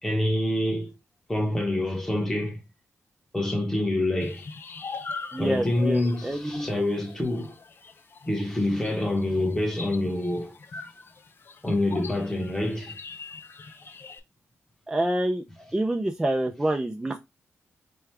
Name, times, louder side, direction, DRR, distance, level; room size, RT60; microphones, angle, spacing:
voice 1, 0.0-0.9 1.3-2.6 3.3-4.4 5.4-7.5 8.3-10.6 11.6-13.0, left 1 dB, 10° left, 1.1 m, -26 dB
sound 1, 4.2-14.2, left 4 dB, 45° left, 0.5 m, -41 dB
voice 2, 5.3-6.7 14.9-15.4 15.7-17.2, right 1 dB, 10° right, 0.5 m, -27 dB
4.9 x 2.3 x 3.3 m
wide cardioid pair, 115°, 5 cm